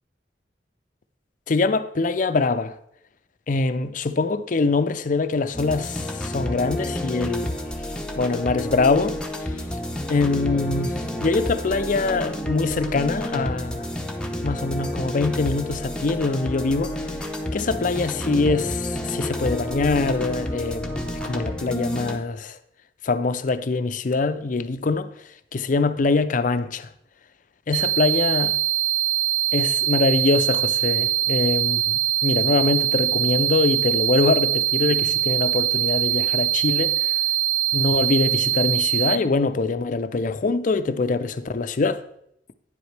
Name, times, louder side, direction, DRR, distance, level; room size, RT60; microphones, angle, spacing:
voice 1, 1.5-2.8 3.5-7.6 8.2-9.2 10.1-13.9 14.4-16.9 17.5-22.6 23.0-25.1 25.5-26.9 27.7-28.5 29.5-37.1 37.7-42.0, left 3 dB, 45° left, 0.5 m, -23 dB
sound 1, 5.5-22.2, left 1 dB, 5° left, 0.8 m, -30 dB
sound 2, 27.7-39.2, right 12 dB, 20° right, 0.5 m, -22 dB
9.9 x 7.9 x 3.3 m
head